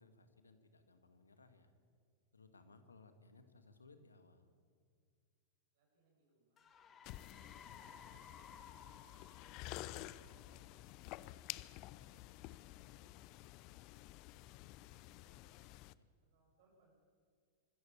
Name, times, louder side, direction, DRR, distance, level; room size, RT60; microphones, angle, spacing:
voice 1, 0.0-1.7 2.3-4.5 16.0-16.1, left 3 dB, 85° left, 8 dB, 1.9 m, -63 dB
voice 2, 5.7-9.2 10.0-12.4 13.2-14.2 14.5-15.5 16.2-17.0, right 2 dB, 55° right, 0 dB, 7.4 m, -76 dB
sound 1, 6.6-11.1, left 6 dB, 30° left, 2.2 m, -59 dB
sound 2, 7.0-15.9, left 16 dB, 45° left, 0.6 m, -51 dB
25.0 x 13.5 x 8.8 m, 2.1 s
figure-of-eight pair, 95°, 0 cm